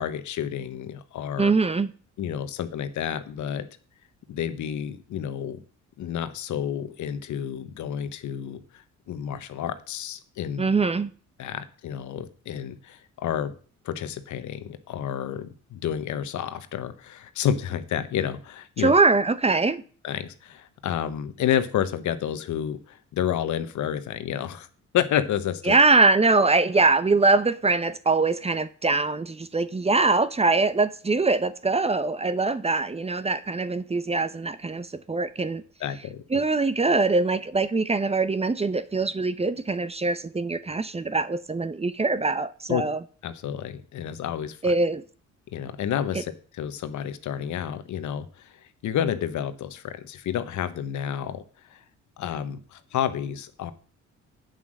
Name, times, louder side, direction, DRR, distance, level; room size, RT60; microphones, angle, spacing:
voice 1, 0.0-1.5 2.2-3.7 4.3-5.6 6.0-10.7 11.4-13.5 13.8-18.9 20.0-24.7 24.9-25.8 35.8-36.2 42.7-42.8 43.2-44.7 45.5-51.4 51.7-51.8 52.2-53.7, left 9 dB, 75° left, 1.2 m, -30 dB
voice 2, 1.4-1.9 10.6-11.1 18.8-19.8 25.7-35.6 36.3-43.0 44.6-45.0, right 3 dB, 20° right, 0.8 m, -23 dB
8.3 x 7.5 x 6.5 m
cardioid pair, 90°, 30 cm